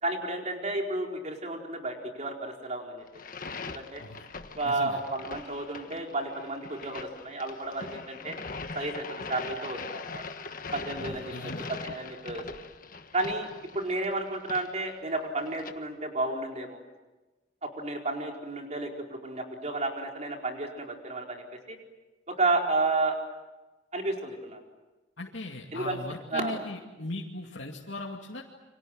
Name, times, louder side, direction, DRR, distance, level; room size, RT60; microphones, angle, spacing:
voice 1, 0.0-3.0 3.6-4.0 4.6-8.4 8.7-10.2 10.7-12.4 13.1-13.5 13.7-16.8 17.8-21.8 22.3-23.2 23.9-24.6 25.7-26.0 26.3-26.6, right 2 dB, 40° right, 1 dB, 4.6 m, -32 dB
sound 1, 3.1-15.7, left 4 dB, 50° left, 1.4 m, -41 dB
voice 2, 4.6-5.0 11.0-11.7 25.2-28.4, left 2 dB, 80° left, -1 dB, 2.5 m, -39 dB
29.5 x 25.5 x 7.8 m, 1.1 s
head